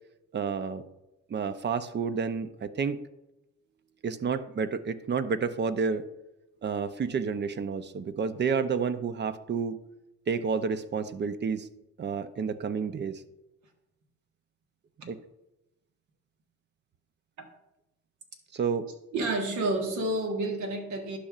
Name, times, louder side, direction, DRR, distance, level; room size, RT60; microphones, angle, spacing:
voice 1, 0.3-0.8 1.3-3.0 4.0-6.1 6.6-9.8 10.3-11.7 12.0-13.2 15.0-15.2 18.5-18.9, right 5 dB, 35° right, 12 dB, 0.5 m, -30 dB
voice 2, 19.1-21.2, right 2 dB, 75° right, 3 dB, 1.5 m, -29 dB
11.5 x 5.5 x 2.5 m, 0.94 s
cardioid pair, 90°, 30 cm